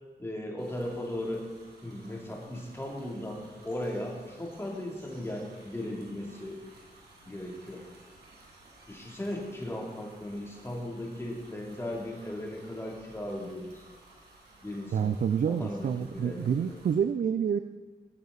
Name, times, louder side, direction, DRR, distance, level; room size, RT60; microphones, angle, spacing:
voice 1, 0.2-1.4 1.8-6.6 7.3-7.8 8.9-13.8 14.6-15.1 15.5-16.7, left 1 dB, 15° left, -2 dB, 2.9 m, -37 dB
sound 1, 0.6-16.9, right 2 dB, 90° right, 2.4 m, -56 dB
voice 2, 14.9-17.6, right 7 dB, 55° right, 11 dB, 0.4 m, -28 dB
16.5 x 6.9 x 4.1 m, 1.4 s
cardioid pair, 70°, 16 cm